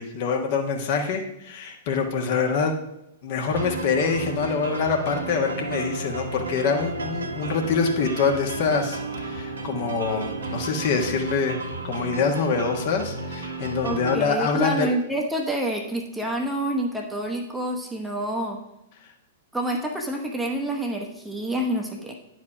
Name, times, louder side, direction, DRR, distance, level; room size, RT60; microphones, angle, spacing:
voice 1, 0.0-2.7 3.2-11.6 11.8-14.9, left 5 dB, 45° left, 3 dB, 1.4 m, -25 dB
sound 1, 3.5-14.2, right 3 dB, 70° right, 1.5 m, -33 dB
voice 2, 13.8-18.6 19.5-22.2, right 1 dB, 5° right, 1 dB, 1.1 m, -28 dB
9.6 x 4.8 x 5.8 m, 0.84 s
figure-of-eight pair, 105°, 0 cm